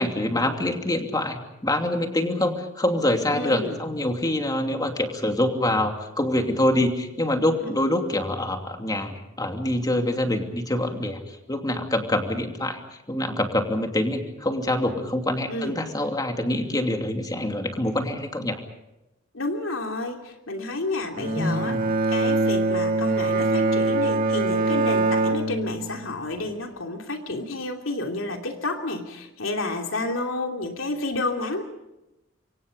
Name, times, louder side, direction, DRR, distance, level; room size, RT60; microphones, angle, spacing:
voice 1, 0.0-12.8 13.1-18.6 21.2-21.8, left 1 dB, 20° left, 4 dB, 2.7 m, -25 dB
voice 2, 3.3-3.8 15.5-15.8 19.3-21.8 22.1-31.6, left 2 dB, 90° left, 3 dB, 3.0 m, -30 dB
Bowed string instrument, 21.1-26.4, right 2 dB, 45° right, 2.0 m, -23 dB
28.0 x 24.0 x 5.3 m, 0.95 s
head